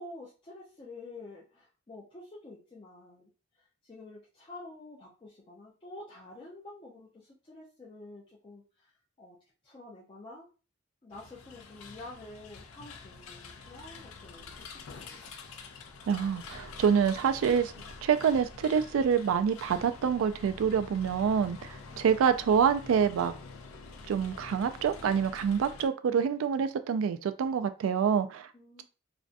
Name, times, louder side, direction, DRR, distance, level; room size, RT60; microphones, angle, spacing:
voice 1, 0.0-3.3 3.6-8.9 9.2-9.4 9.6-10.5 11.0-15.2 17.7-17.8 21.8-22.0 28.5-28.8, left 2 dB, 25° left, 0.5 m, -48 dB
sound 1, 11.1-25.9, left 4 dB, 90° left, 0.4 m, -47 dB
voice 2, 16.1-17.7 18.0-23.3 24.1-28.5, right 7 dB, 80° right, 0.3 m, -26 dB
2.5 x 2.2 x 2.4 m
head